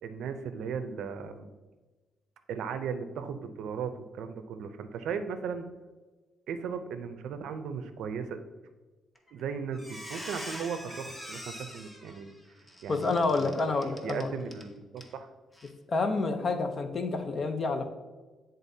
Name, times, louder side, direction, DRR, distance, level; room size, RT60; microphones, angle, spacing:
voice 1, 0.0-1.5 2.5-5.7 6.5-8.4 9.3-12.3 12.8-13.5 14.0-15.3, right 6 dB, 75° right, 9 dB, 0.5 m, -37 dB
Squeak, 9.2-9.4 9.7-14.7 15.0-15.1 15.5-15.7, equal, 15° left, 0.9 m, -44 dB
voice 2, 12.9-14.3 15.9-17.9, left 3 dB, 45° left, 7 dB, 0.7 m, -28 dB
9.9 x 3.8 x 2.7 m, 1.3 s
cardioid pair, 90°, 0 cm